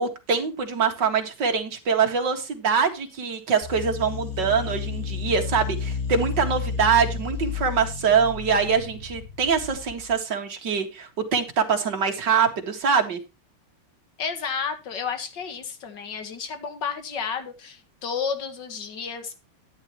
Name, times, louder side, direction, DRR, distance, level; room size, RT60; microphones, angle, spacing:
voice 1, 0.0-13.2, right 6 dB, 55° right, 2.5 m, -24 dB
sound 1, 3.6-10.1, left 6 dB, 40° left, 2.1 m, -32 dB
voice 2, 14.2-19.4, left 6 dB, 55° left, 2.3 m, -31 dB
13.0 x 10.0 x 3.0 m
omnidirectional pair, 2.4 m